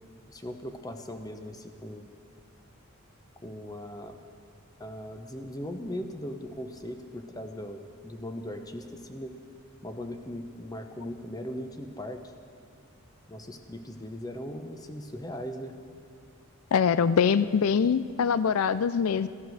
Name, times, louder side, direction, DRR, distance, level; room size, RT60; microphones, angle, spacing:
voice 1, 0.3-2.1 3.4-4.2 4.8-9.3 9.8-12.2 13.3-15.7, equal, 15° left, 6 dB, 0.9 m, -39 dB
voice 2, 16.7-19.3, left 6 dB, 75° left, 14 dB, 0.4 m, -23 dB
15.5 x 13.5 x 6.4 m, 2.2 s
head